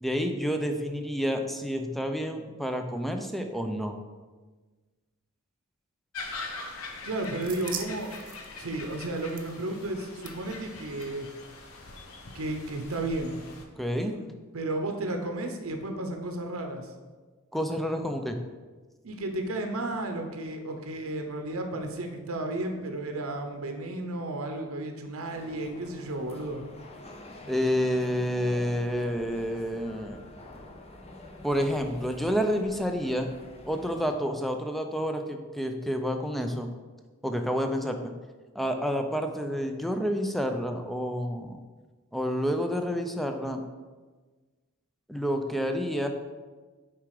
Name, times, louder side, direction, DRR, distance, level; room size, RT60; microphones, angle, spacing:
voice 1, 0.0-4.0 13.8-14.1 17.5-18.4 27.5-30.2 31.4-33.3 33.7-36.7 37.2-38.0 38.5-41.6 42.1-43.6 45.1-46.1, equal, ahead, 5 dB, 0.5 m, -29 dB
sound 1, 6.1-13.6, left 3 dB, 75° left, 1.0 m, -43 dB
sound 2, 6.8-12.0, right 8 dB, 40° right, 0.7 m, -45 dB
voice 2, 7.0-8.2 8.6-11.3 12.3-13.4 13.9-16.9 19.0-26.7, right 2 dB, 75° right, 4 dB, 0.8 m, -33 dB
sound 3, 25.3-34.1, left 1 dB, 30° left, 0.8 m, -47 dB
7.4 x 4.7 x 4.9 m, 1.3 s
head